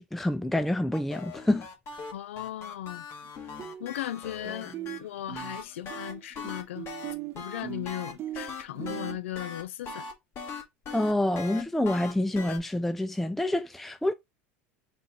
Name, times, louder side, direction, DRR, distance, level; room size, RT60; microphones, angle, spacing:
voice 1, 0.0-1.7 10.9-14.1, left 1 dB, 5° left, 0.3 m, -27 dB
sound 1, 0.9-5.0 5.3-12.6, left 4 dB, 40° left, 1.3 m, -40 dB
voice 2, 2.1-3.1 3.4-3.5 3.8-6.9 7.3-10.1, left 13 dB, 90° left, 0.4 m, -37 dB
sound 2, 3.2-3.3 3.6-4.2 4.4-9.2, right 12 dB, 40° right, 1.2 m, -40 dB
4.1 x 2.4 x 4.4 m
supercardioid pair, 105°, 7 cm